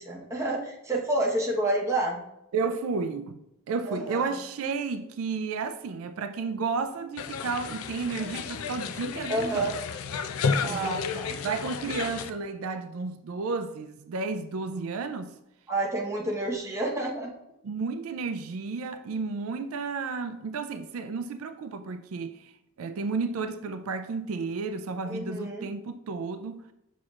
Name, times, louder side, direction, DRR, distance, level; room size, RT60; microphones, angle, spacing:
voice 1, 0.0-2.2 3.9-4.3 9.3-9.7 10.6-11.4 15.7-17.3 25.1-25.7, right 1 dB, 15° right, 1.0 m, -29 dB
voice 2, 2.5-3.4 3.7-9.7 10.6-15.3 17.6-22.5 22.8-26.6, right 4 dB, 80° right, 0.4 m, -32 dB
sound 1, 7.2-12.3, left 5 dB, 80° left, 0.4 m, -32 dB
6.4 x 6.0 x 2.4 m
head